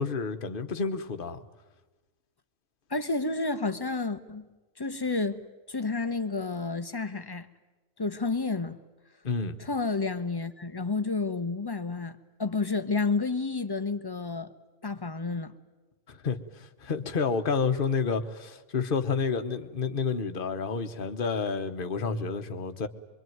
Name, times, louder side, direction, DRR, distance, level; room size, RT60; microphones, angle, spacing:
voice 1, 0.0-1.4 9.2-9.6 16.1-22.9, left 5 dB, 40° left, 1.2 m, -30 dB
voice 2, 2.9-4.5 4.8-5.4 5.7-7.5 8.0-8.8 9.6-14.5 14.8-15.5, left 3 dB, 20° left, 0.8 m, -30 dB
25.0 x 23.0 x 9.3 m
omnidirectional pair, 1.5 m